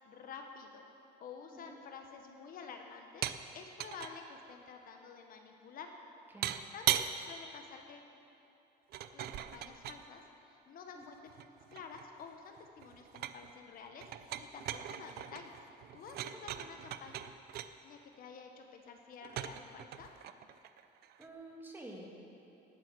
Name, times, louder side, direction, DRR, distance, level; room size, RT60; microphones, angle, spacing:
voice 1, 0.0-0.9 1.2-5.9 6.7-8.1 9.1-10.2 10.5-11.2 11.7-15.5 15.9-17.2 17.8-20.1, left 5 dB, 50° left, 4 dB, 1.0 m, -50 dB
sound 1, 3.2-3.4 3.7-4.1 6.4-7.1 8.9-10.0 11.0-12.3 12.6-13.5 14.0-17.7 19.2-21.3, right 12 dB, 60° right, 0.5 m, -39 dB
voice 2, 21.2-22.1, right 2 dB, 10° right, -1 dB, 1.7 m, -49 dB
18.5 x 7.6 x 6.0 m, 2.8 s
cardioid pair, 160°, 19 cm